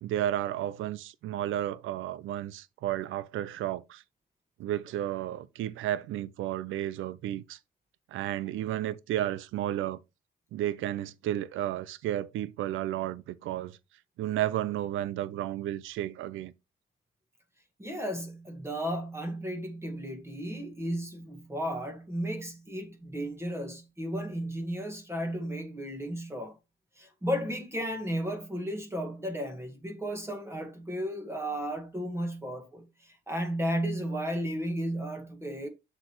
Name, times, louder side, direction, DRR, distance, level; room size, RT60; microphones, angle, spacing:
voice 1, 0.0-4.0 4.6-7.6 8.1-10.0 10.5-13.8 14.2-16.5, right 12 dB, 80° right, 0.5 m, -32 dB
voice 2, 17.8-26.6 27.0-35.7, equal, 15° right, 1.7 m, -34 dB
7.5 x 6.7 x 3.1 m
cardioid pair, 90°, 20 cm